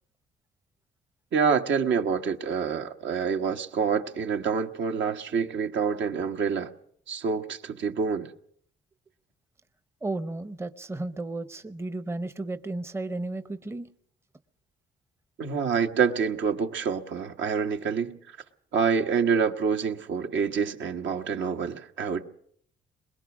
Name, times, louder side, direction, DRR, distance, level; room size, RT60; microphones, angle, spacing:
voice 1, 1.3-6.7 7.1-8.3 15.4-18.2 18.7-22.3, right 6 dB, 70° right, 1.4 m, -27 dB
voice 2, 10.0-13.9, right 2 dB, 15° right, 0.8 m, -33 dB
22.5 x 20.5 x 6.1 m
cardioid pair, 90°, 20 cm